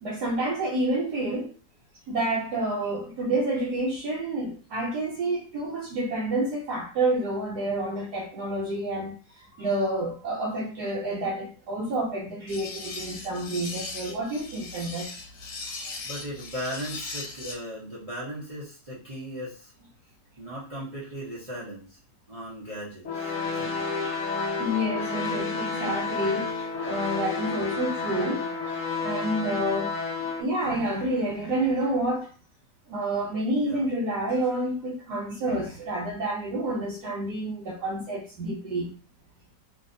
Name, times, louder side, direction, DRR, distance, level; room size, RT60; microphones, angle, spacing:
voice 1, 0.0-1.5 2.1-15.1 15.7-16.0 24.0-24.2 24.6-28.4 29.0-29.9 30.3-32.3 32.9-38.9, right 1 dB, 70° right, 1.2 m, -29 dB
sound 1, 12.5-17.5, left 3 dB, 80° left, 1.5 m, -38 dB
voice 2, 16.0-19.7 20.4-22.0 22.3-23.9 33.6-33.9, equal, 40° right, 0.5 m, -37 dB
sound 2, 23.0-30.4, left 4 dB, 65° left, 0.8 m, -30 dB
2.8 x 2.6 x 2.5 m
omnidirectional pair, 1.9 m